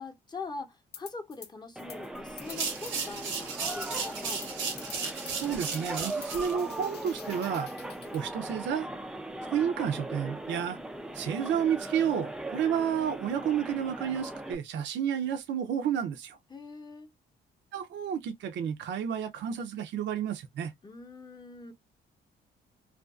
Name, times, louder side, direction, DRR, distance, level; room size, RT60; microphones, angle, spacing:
voice 1, 0.0-4.4 16.5-17.1 20.8-21.7, left 3 dB, 20° left, 0.7 m, -43 dB
sound 1, 0.9-1.5 1.8-8.2, left 8 dB, 55° left, 0.5 m, -48 dB
sound 2, 1.8-14.6, right 1 dB, 5° right, 0.3 m, -39 dB
sound 3, 2.4-6.5, right 5 dB, 85° right, 0.9 m, -35 dB
voice 2, 5.3-7.7 8.1-8.9 9.4-10.8 11.1-16.4 17.7-20.7, right 8 dB, 65° right, 0.5 m, -31 dB
2.5 x 2.3 x 2.3 m
cardioid pair, 90°, 20 cm